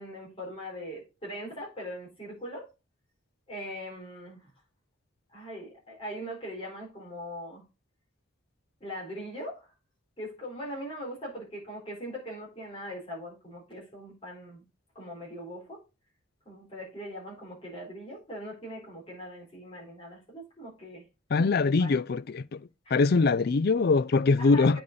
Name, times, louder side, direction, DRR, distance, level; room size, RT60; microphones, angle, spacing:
voice 1, 0.0-2.7 3.5-4.5 5.3-7.6 8.8-9.7 10.2-14.6 14.9-15.8 16.5-21.1 21.5-22.0 22.8-23.0 24.4-24.8, equal, 25° left, 4.3 m, -41 dB
voice 2, 21.3-22.6 22.9-24.8, left 4 dB, 50° left, 0.4 m, -23 dB
8.5 x 5.4 x 4.0 m
head